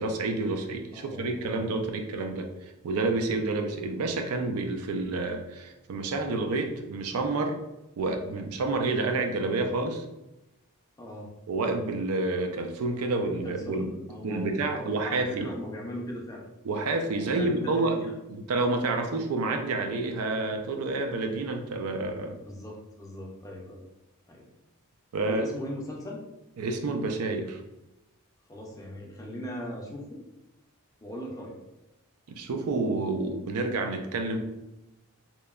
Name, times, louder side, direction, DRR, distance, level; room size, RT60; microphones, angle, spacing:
voice 1, 0.0-2.5 2.8-7.6 8.0-10.0 11.5-13.9 14.2-15.5 16.6-18.0 18.3-22.4 25.1-25.4 26.6-27.6 32.4-34.4, right 3 dB, 75° right, 5 dB, 0.4 m, -29 dB
voice 2, 0.9-2.0 11.0-11.3 13.2-16.4 17.1-18.1 22.4-23.8 24.3-24.5 25.2-26.2 28.5-30.2 31.0-31.6, equal, 15° left, -1 dB, 0.4 m, -39 dB
2.9 x 2.1 x 2.3 m, 0.97 s
head